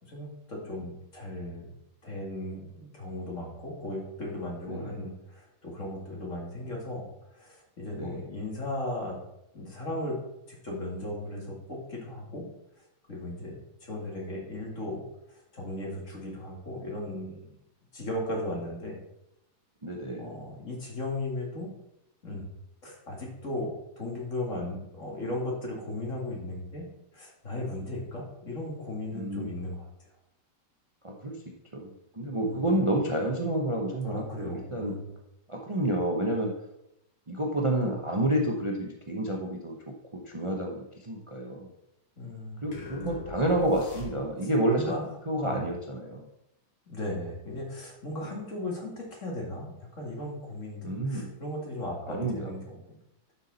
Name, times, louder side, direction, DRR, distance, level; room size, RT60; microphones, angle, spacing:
voice 1, 0.0-1.7 2.0-7.0 7.3-9.2 9.5-10.2 10.5-12.4 13.1-13.5 13.8-15.0 15.5-17.3 17.9-19.0 20.2-21.7 22.2-22.5 22.8-26.9 27.1-29.9 32.4-32.6 34.0-35.1 42.2-42.7 44.7-45.0 45.4-45.6 46.9-52.8, left 1 dB, 35° left, -2 dB, 2.5 m, -36 dB
voice 2, 4.7-5.1 7.9-8.3 19.8-20.3 29.1-29.6 31.0-34.9 35.5-36.5 37.3-39.8 40.1-41.7 42.6-46.3 48.2-48.4 50.8-51.3 52.1-52.5, right 1 dB, 55° right, 1 dB, 0.3 m, -30 dB
sound 1, 42.7-44.6, left 2 dB, 75° left, 2.3 m, -42 dB
11.5 x 6.0 x 4.1 m, 0.82 s
omnidirectional pair, 2.3 m